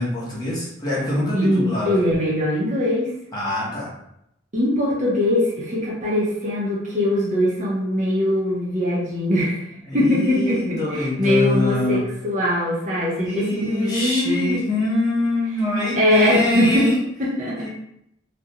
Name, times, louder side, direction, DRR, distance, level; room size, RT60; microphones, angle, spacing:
voice 1, 0.0-2.0 3.3-3.9 6.9-7.0 9.9-12.0 13.2-17.0 17.6-17.7, left 1 dB, 20° left, -7 dB, 0.8 m, -24 dB
voice 2, 1.3-3.1 4.5-9.6 9.9-14.8 16.0-16.9 17.2-17.7, left 1 dB, 40° right, -5 dB, 0.5 m, -21 dB
2.4 x 2.1 x 2.8 m, 0.79 s
head